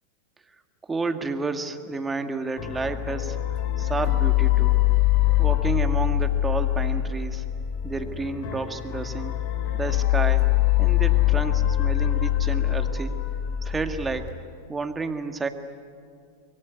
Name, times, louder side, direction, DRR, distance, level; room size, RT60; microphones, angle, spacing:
voice 1, 0.8-3.4 3.8-4.8 5.4-7.4 7.8-9.4 9.7-10.5 10.8-13.1 13.6-14.3 14.7-15.5, right 3 dB, 15° right, 7 dB, 2.0 m, -31 dB
sound 1, 2.6-14.3, left 14 dB, 55° left, 3.2 m, -23 dB
26.0 x 22.5 x 9.8 m, 2.2 s
hypercardioid pair, 95°, 0 cm